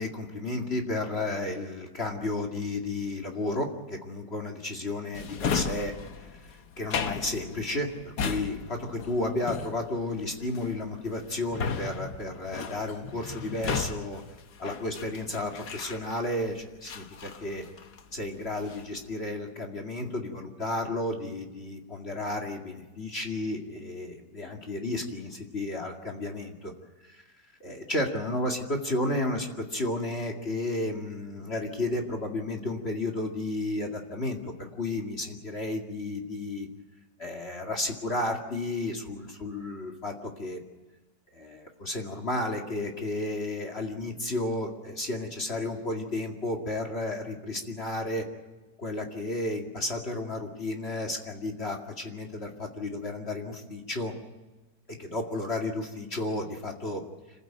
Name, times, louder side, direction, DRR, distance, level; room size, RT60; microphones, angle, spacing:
voice 1, 0.0-5.9 6.2-6.3 6.8-14.2 14.6-17.6 18.1-26.7 27.1-27.2 27.6-36.7 37.2-40.6 41.3-48.2 48.8-54.1 55.0-57.0, left 2 dB, 35° left, 2 dB, 2.5 m, -32 dB
Drawer open or close, 5.1-16.4 16.8-18.1 18.5-19.0, left 5 dB, 70° left, 1.8 m, -35 dB
27.0 x 15.0 x 9.0 m, 1.2 s
omnidirectional pair, 1.8 m